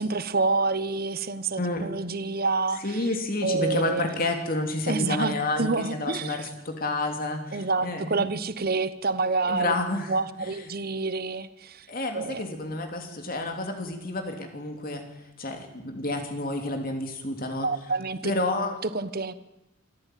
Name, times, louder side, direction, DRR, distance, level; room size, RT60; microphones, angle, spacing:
voice 1, 0.0-3.0 3.4-4.1 4.9-5.3 5.6-6.5 7.5-9.7 10.1-11.9 12.1-12.4 17.6-18.3 18.8-19.3, right 3 dB, 45° right, 14 dB, 1.0 m, -28 dB
voice 2, 1.6-1.9 2.8-8.3 9.5-10.1 10.4-10.5 11.9-15.0 15.4-17.7 18.2-18.7, left 2 dB, 45° left, 5 dB, 2.9 m, -29 dB
26.0 x 14.5 x 9.2 m, 0.98 s
head